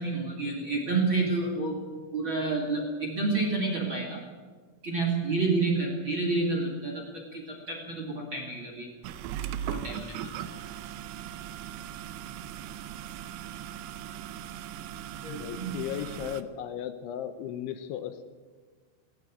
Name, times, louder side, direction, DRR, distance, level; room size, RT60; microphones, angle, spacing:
voice 1, 0.0-1.8 2.1-4.2 4.8-8.9 9.6-10.1 15.2-15.7, right 3 dB, 35° right, 1 dB, 2.2 m, -29 dB
sound 1, 9.0-16.4, right 10 dB, 90° right, 2.4 m, -38 dB
voice 2, 15.2-18.2, left 10 dB, 75° left, 9 dB, 3.1 m, -36 dB
18.0 x 17.5 x 8.5 m, 1.4 s
omnidirectional pair, 5.8 m